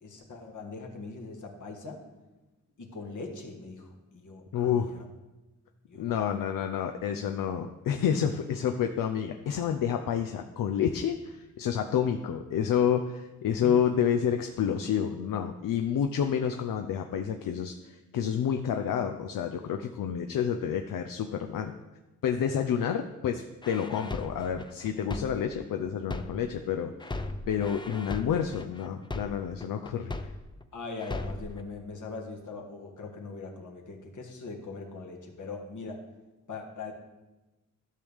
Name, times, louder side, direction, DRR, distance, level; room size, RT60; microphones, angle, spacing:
voice 1, 0.0-2.0 2.8-5.1 5.9-6.2 13.6-13.8 30.7-36.0 36.5-36.9, left 3 dB, 65° left, 1 dB, 1.7 m, -41 dB
voice 2, 4.5-4.9 6.0-21.7 22.2-30.1, left 8 dB, 85° left, 5 dB, 0.6 m, -29 dB
sound 1, 23.6-26.6 27.0-30.6 31.0-31.6, left 2 dB, 15° left, 0.6 m, -37 dB
12.0 x 6.5 x 3.5 m, 1.1 s
cardioid pair, 70°, 32 cm